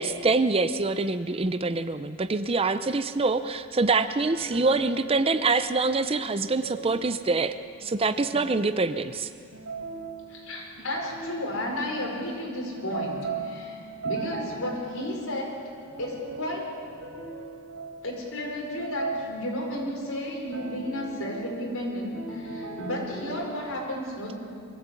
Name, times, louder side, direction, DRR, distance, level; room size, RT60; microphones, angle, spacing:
voice 1, 0.0-9.3, right 3 dB, 25° right, 11 dB, 0.5 m, -25 dB
sound 1, 4.2-5.6 6.4-12.2 12.7-20.1 20.5-23.7, right 3 dB, 65° right, 4.8 m, -39 dB
voice 2, 10.3-15.5 16.0-16.7 18.0-24.4, left 1 dB, 70° left, -1 dB, 4.9 m, -33 dB
22.5 x 14.5 x 8.4 m, 2.3 s
head